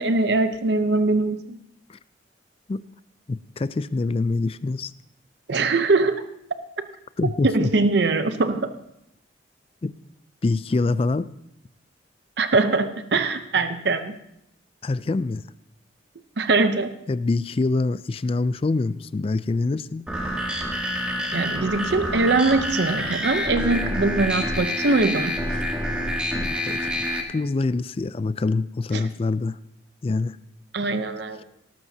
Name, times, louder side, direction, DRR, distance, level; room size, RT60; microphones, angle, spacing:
voice 1, 0.0-1.6 5.5-6.2 6.8-6.9 7.2-8.7 12.4-14.2 16.4-16.9 21.3-25.4 30.7-31.4, right 3 dB, 65° right, 10 dB, 0.7 m, -22 dB
voice 2, 3.3-4.9 7.2-7.7 9.8-9.9 10.4-11.3 14.8-15.4 17.1-20.1 23.6-23.7 26.3-29.6 30.0-30.4, left 3 dB, 30° left, 16 dB, 0.3 m, -25 dB
sound 1, 20.1-27.2, equal, 5° right, 1.7 m, -27 dB
18.0 x 13.0 x 2.8 m, 0.80 s
head